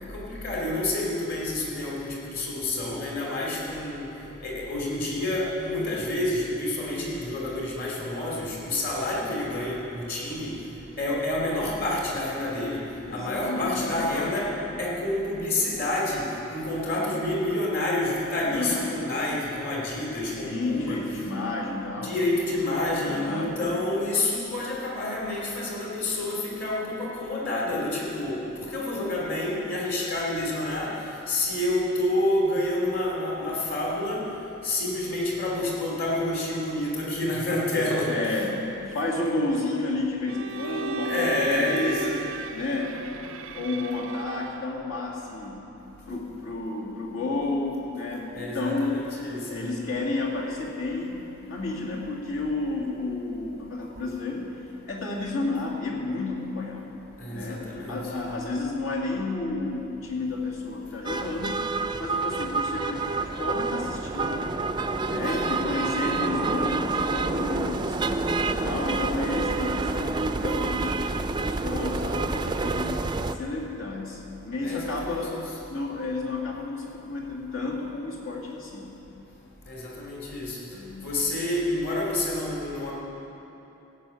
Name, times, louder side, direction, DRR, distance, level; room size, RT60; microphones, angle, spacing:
voice 1, 0.1-4.1 4.4-10.5 11.0-14.5 14.8-21.0 22.0-30.9 31.3-34.3 34.6-38.5 41.0-42.3 48.3-49.7 57.2-58.2 65.2-65.4 74.6-75.4 79.7-80.6 81.0-82.9, left 1 dB, 50° left, -3 dB, 3.0 m, -28 dB
voice 2, 13.1-14.7 16.8-17.2 18.5-18.9 20.4-22.2 23.0-23.6 38.1-38.6 38.8-42.2 42.5-42.9 43.5-45.6 46.1-49.0 49.5-54.5 54.8-56.9 57.3-61.6 62.0-64.5 65.0-68.0 68.4-71.0 71.4-73.0 73.3-75.3 75.7-78.9 80.7-81.1, left 2 dB, 75° left, -3 dB, 2.2 m, -31 dB
Bowed string instrument, 40.3-44.8, right 4 dB, 80° right, 0.5 m, -35 dB
sound 1, 61.1-73.4, right 3 dB, 20° right, 0.4 m, -28 dB
16.0 x 6.3 x 8.3 m, 2.9 s
head